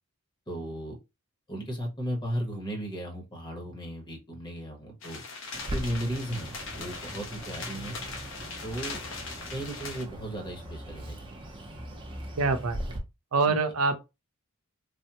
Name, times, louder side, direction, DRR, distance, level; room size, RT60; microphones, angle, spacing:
voice 1, 0.5-1.0 1.5-5.2 5.7-8.0 8.6-9.0 9.5-11.3, equal, 20° left, 1.0 m, -35 dB
sound 1, 5.0-10.0, left 4 dB, 65° left, 0.8 m, -40 dB
Bird, 5.5-13.0, right 1 dB, 25° right, 0.6 m, -40 dB
voice 2, 12.4-12.8 13.3-14.0, right 4 dB, 85° right, 0.6 m, -25 dB
3.4 x 2.1 x 2.8 m
head